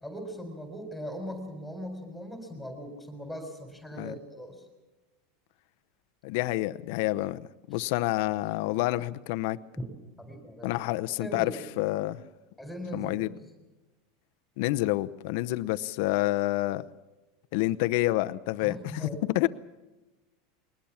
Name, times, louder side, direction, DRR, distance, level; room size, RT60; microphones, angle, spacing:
voice 1, 0.0-4.6 9.8-9.9 10.2-10.7 11.2-11.7 12.6-13.2 18.6-19.3, equal, ahead, 4 dB, 3.9 m, -39 dB
voice 2, 6.2-9.6 10.6-12.2 12.9-13.3 14.6-16.8 17.5-19.5, left 18 dB, 65° left, 12 dB, 0.8 m, -28 dB
22.0 x 19.5 x 7.2 m, 1.1 s
supercardioid pair, 130°, 0 cm